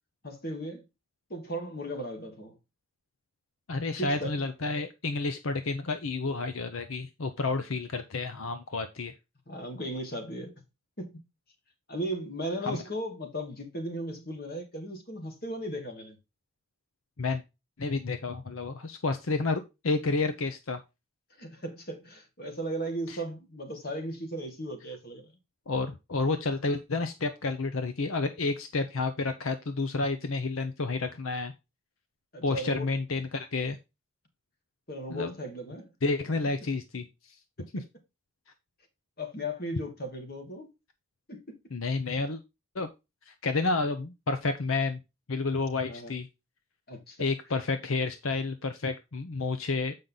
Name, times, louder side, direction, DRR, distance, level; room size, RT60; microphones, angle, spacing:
voice 1, 0.2-0.8 1.3-2.6 4.0-4.3 9.5-10.5 11.0-11.1 11.9-16.2 21.4-25.3 32.3-32.9 34.9-35.9 39.2-40.7 41.3-41.6 45.9-46.1 46.9-47.3, right 1 dB, 45° left, 2.1 m, -36 dB
voice 2, 3.7-9.1 12.6-12.8 17.2-17.4 17.8-20.8 23.1-23.2 25.7-31.5 32.4-33.8 35.1-35.3 36.0-37.1 37.7-37.8 41.7-42.4 42.7-42.9 43.3-45.0 45.3-46.3 47.2-50.0, left 3 dB, 75° left, 0.8 m, -30 dB
7.7 x 5.2 x 4.0 m
head